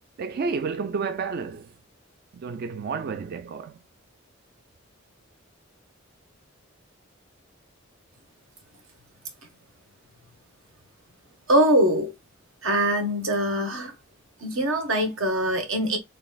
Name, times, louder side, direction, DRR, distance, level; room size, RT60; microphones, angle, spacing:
voice 1, 0.2-1.7 2.3-3.8, right 5 dB, 50° right, 0.3 m, -30 dB
voice 2, 11.5-12.1 12.6-13.9 14.4-16.0, right 1 dB, 85° right, 1.3 m, -23 dB
4.1 x 3.4 x 2.3 m
head